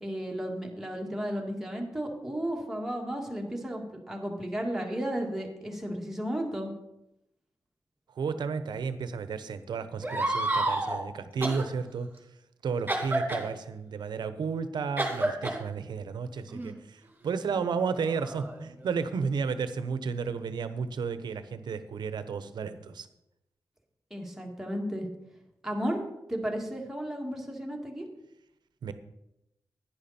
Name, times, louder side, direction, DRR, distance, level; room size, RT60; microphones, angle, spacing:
voice 1, 0.0-6.7 24.1-25.1 25.6-28.1, equal, 5° right, 0 dB, 2.2 m, -34 dB
voice 2, 8.1-12.1 12.6-23.1 28.8-28.9, right 5 dB, 85° right, 11 dB, 0.8 m, -33 dB
sound 1, 10.0-11.0 11.4-11.6 12.9-13.5 15.0-15.6 16.5-16.7 17.6-18.9, right 1 dB, 25° right, 2.6 m, -30 dB
10.5 x 9.9 x 4.3 m, 0.88 s
cardioid pair, 85°, 7 cm